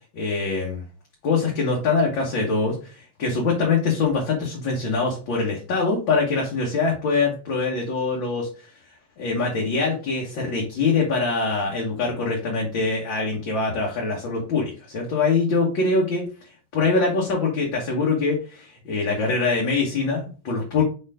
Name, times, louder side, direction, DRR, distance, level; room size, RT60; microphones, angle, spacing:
voice 1, 0.1-0.8 1.2-8.7 9.2-16.2 16.7-20.8, left 4 dB, 60° left, -3 dB, 2.2 m, -23 dB
5.0 x 4.6 x 4.9 m, 0.35 s
omnidirectional pair, 2.4 m